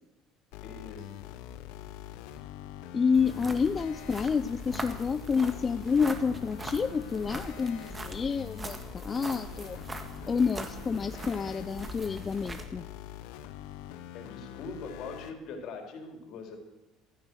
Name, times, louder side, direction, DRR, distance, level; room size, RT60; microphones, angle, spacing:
sound 1, 0.5-15.3, left 12 dB, 80° left, 1.1 m, -44 dB
voice 1, 0.6-1.2 14.1-16.6, left 4 dB, 60° left, 3 dB, 4.0 m, -42 dB
voice 2, 2.9-9.8 10.3-12.9, left 5 dB, 30° left, 12 dB, 0.5 m, -29 dB
sound 2, 3.1-12.7, right 2 dB, 20° right, 1.8 m, -42 dB
15.0 x 13.0 x 6.4 m, 0.99 s
supercardioid pair, 100°, 0 cm